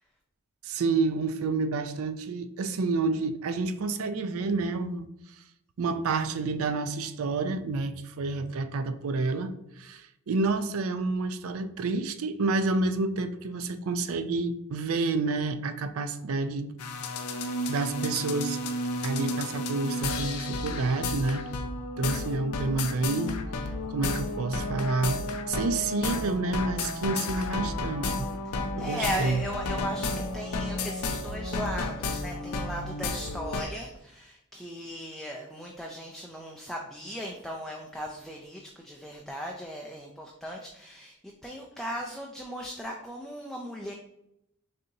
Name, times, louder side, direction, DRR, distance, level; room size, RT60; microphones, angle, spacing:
voice 1, 0.6-5.1 5.4-5.5 5.8-16.7 17.4-18.6 19.0-21.5 22.0-23.4 23.6-28.3 28.8-29.4, right 3 dB, 65° right, 0.4 m, -29 dB
sound 1, 16.8-33.6, left 2 dB, 85° left, 0.5 m, -32 dB
voice 2, 28.5-41.2 41.4-43.9, equal, ahead, 0.3 m, -37 dB
6.5 x 2.8 x 2.6 m
head